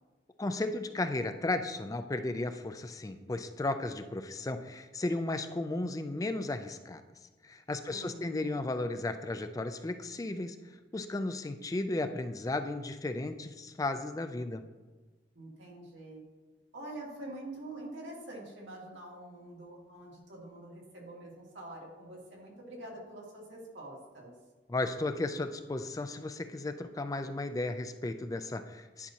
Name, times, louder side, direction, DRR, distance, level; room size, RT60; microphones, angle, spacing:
voice 1, 0.4-7.0 7.4-10.6 10.9-14.6 24.7-29.1, left 2 dB, 20° left, 8 dB, 0.3 m, -34 dB
voice 2, 7.9-8.6 15.3-16.2 16.7-24.3, right 1 dB, 90° right, -3 dB, 2.2 m, -46 dB
11.0 x 5.7 x 2.9 m, 1.3 s
head